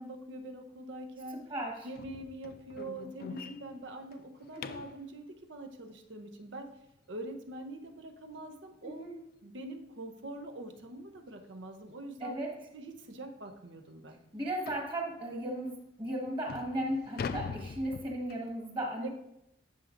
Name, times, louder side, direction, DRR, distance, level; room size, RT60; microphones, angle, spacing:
voice 1, 0.0-1.5 1.8-6.7 7.1-9.1 9.4-12.4 12.7-14.2 19.0-19.1, right 1 dB, 75° right, 6 dB, 0.8 m, -44 dB
voice 2, 1.5-1.9 4.5-4.8 8.8-9.2 12.2-12.5 14.3-19.1, right 1 dB, 25° right, 0 dB, 1.5 m, -36 dB
sound 1, 1.9-5.0 7.9-8.0 8.4-8.6 9.0-9.1 9.6-9.7 10.8-10.9 11.3-11.4 12.1-12.2 12.5-12.6 13.1-13.2 14.7-15.0 15.7-15.8 16.3-18.6, left 5 dB, 50° left, 0.3 m, -43 dB
11.0 x 5.9 x 2.6 m, 0.82 s
head